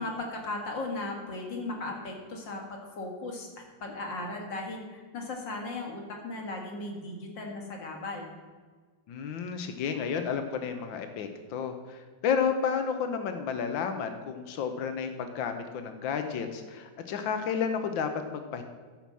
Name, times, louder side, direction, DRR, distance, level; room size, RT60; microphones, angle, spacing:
voice 1, 0.0-3.5 3.8-8.3, left 2 dB, 75° left, 1 dB, 2.6 m, -36 dB
voice 2, 9.1-18.6, left 6 dB, 90° left, 7 dB, 1.6 m, -31 dB
12.0 x 5.5 x 7.5 m, 1.5 s
omnidirectional pair, 2.0 m